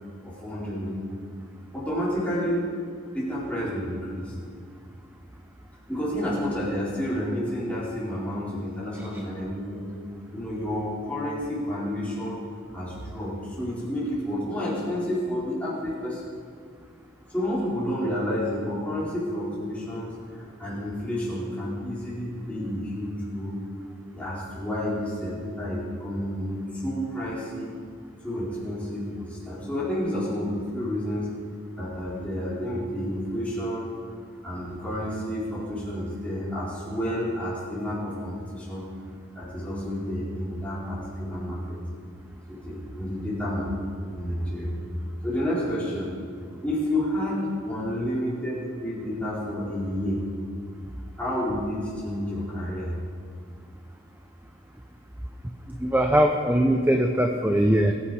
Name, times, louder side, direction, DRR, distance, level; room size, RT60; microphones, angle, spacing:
voice 1, 0.2-1.2 1.7-2.7 3.1-4.3 5.9-9.9 10.3-12.4 12.7-16.3 17.3-23.6 24.1-27.7 28.2-31.3 31.8-33.9 34.4-38.9 39.3-41.8 42.5-43.7 44.1-44.9 45.2-46.1 46.6-50.3 51.2-52.9, equal, 5° left, -9 dB, 4.3 m, -30 dB
voice 2, 55.7-57.9, equal, 10° right, 3 dB, 0.6 m, -21 dB
21.5 x 8.5 x 5.0 m, 2.3 s
head